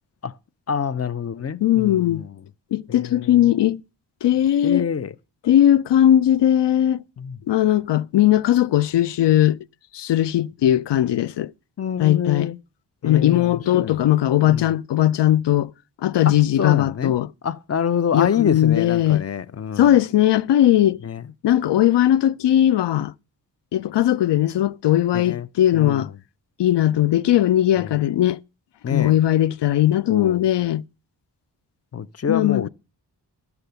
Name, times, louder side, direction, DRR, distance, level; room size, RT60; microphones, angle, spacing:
voice 1, 0.7-2.4 2.9-3.5 4.6-5.1 7.2-7.4 11.8-12.6 13.0-14.0 14.4-14.7 16.3-17.1 17.4-20.0 21.0-21.2 25.1-25.5 25.7-26.1 27.8-28.0 28.8-29.2 30.1-30.4 31.9-32.7, left 7 dB, 40° left, 0.5 m, -27 dB
voice 2, 1.6-2.2 2.7-3.8 4.2-4.9 5.4-7.0 7.5-9.6 9.9-11.5 12.0-12.5 13.0-15.7 16.0-17.3 18.1-19.2 19.8-21.0 21.4-23.1 23.7-26.1 26.6-28.4 28.9-30.8 32.3-32.7, left 12 dB, 85° left, 0.5 m, -18 dB
13.0 x 6.9 x 6.7 m
wide cardioid pair, 135°, 41 cm